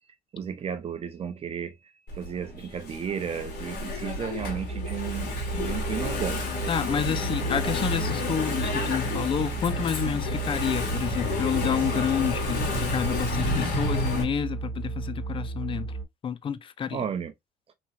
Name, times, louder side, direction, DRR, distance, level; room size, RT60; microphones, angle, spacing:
voice 1, 0.3-6.5 16.9-17.3, right 7 dB, 35° right, 0.5 m, -34 dB
Engine / Mechanisms, 2.1-14.2, left 2 dB, 75° left, 1.6 m, -30 dB
sound 1, 4.4-16.0, right 4 dB, ahead, 1.5 m, -34 dB
voice 2, 6.7-15.9 16.2-17.0, left 8 dB, 30° left, 0.4 m, -29 dB
3.0 x 2.8 x 2.3 m
cardioid pair, 110°, 17 cm